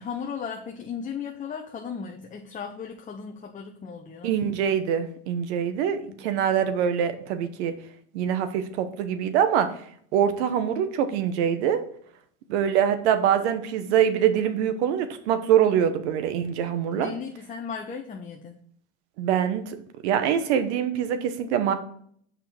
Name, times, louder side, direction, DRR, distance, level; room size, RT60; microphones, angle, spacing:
voice 1, 0.0-4.3 6.1-6.2 16.9-18.6, left 6 dB, 20° left, 3 dB, 0.7 m, -36 dB
voice 2, 4.2-7.7 8.1-9.7 10.1-11.8 12.5-17.1 19.2-19.8 20.0-21.7, right 9 dB, 75° right, 9 dB, 1.1 m, -24 dB
6.8 x 5.3 x 4.5 m, 0.62 s
supercardioid pair, 100°, 34 cm